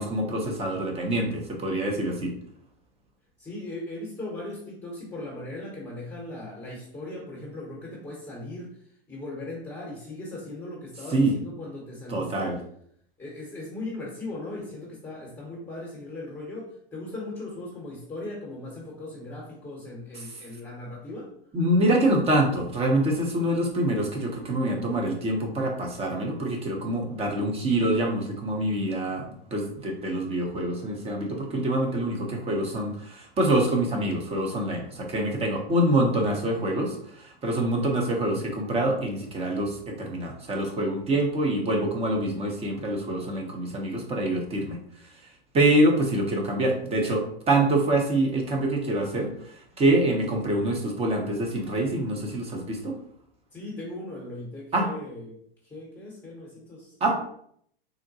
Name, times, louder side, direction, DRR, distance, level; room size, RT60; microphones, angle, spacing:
voice 1, 0.0-2.3 11.1-11.4 12.1-12.6 20.2-20.3 21.5-44.8 45.5-53.0 54.7-54.9 57.0-57.2, right 1 dB, 20° right, 1 dB, 0.7 m, -25 dB
voice 2, 3.4-8.8 9.1-12.6 13.2-21.3 53.5-55.4 55.7-57.2, left 2 dB, 10° left, -5 dB, 0.9 m, -38 dB
3.8 x 2.1 x 2.7 m, 0.66 s
hypercardioid pair, 110°, 30 cm